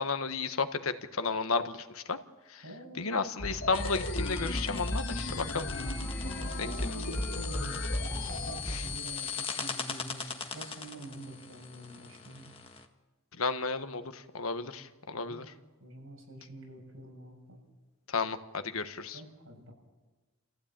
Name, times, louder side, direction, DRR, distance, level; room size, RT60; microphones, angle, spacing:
voice 1, 0.0-2.2 2.5-2.6 3.0-5.7 6.6-6.7 8.7-8.8 13.4-15.4 18.1-19.2, left 4 dB, 80° left, 9 dB, 1.4 m, -33 dB
voice 2, 2.6-3.2 6.2-12.6 14.7-15.4 15.8-17.6 19.1-19.7, right 1 dB, 70° right, 1 dB, 7.5 m, -47 dB
sound 1, 3.4-9.0, equal, 10° left, 1.9 m, -36 dB
sound 2, 3.6-8.6, left 3 dB, 65° left, 2.7 m, -39 dB
sound 3, 3.7-12.8, left 6 dB, 25° left, 1.7 m, -41 dB
29.0 x 15.5 x 8.9 m, 1.2 s
head